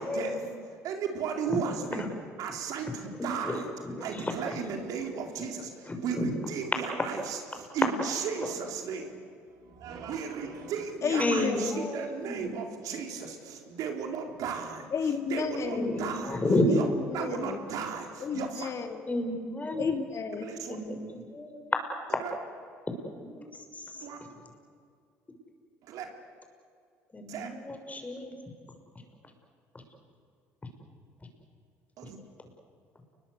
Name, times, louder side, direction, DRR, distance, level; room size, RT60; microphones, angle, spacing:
voice 1, 0.0-0.5 2.0-2.1 3.1-4.3 5.9-6.3 8.4-8.5 11.2-12.6 15.7-16.7 19.1-20.0 20.7-21.7 23.2-24.1 27.1-28.3, left 1 dB, 20° left, 5 dB, 6.3 m, -32 dB
voice 2, 0.7-2.1 2.4-3.7 4.0-9.2 9.6-14.9 15.3-16.4 16.7-18.7 20.4-20.8 22.2-22.3 24.0-24.2 25.8-26.1 27.3-27.5 32.0-32.2, right 6 dB, 65° right, 4 dB, 4.1 m, -35 dB
voice 3, 11.0-12.0 14.9-16.0 16.7-17.6 18.2-19.0 19.8-20.6, left 6 dB, 50° left, 6 dB, 2.4 m, -32 dB
29.5 x 22.0 x 8.2 m, 2.3 s
hypercardioid pair, 60°, 7 cm